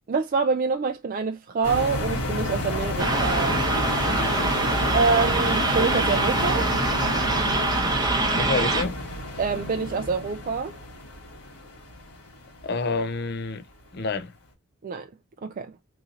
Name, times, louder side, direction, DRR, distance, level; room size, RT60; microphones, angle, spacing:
voice 1, 0.1-3.6 4.9-6.7 9.4-10.7 14.8-15.1 15.4-15.7, right 5 dB, 40° right, 0.3 m, -26 dB
sound 1, 1.6-13.0 13.4-13.6, left 1 dB, 80° left, 1.4 m, -31 dB
sound 2, 3.0-8.8, right 2 dB, 20° right, 0.7 m, -24 dB
voice 2, 4.0-4.6 8.4-9.0 12.6-13.6 13.9-14.3, left 3 dB, 45° left, 0.5 m, -29 dB
3.1 x 2.6 x 3.7 m
head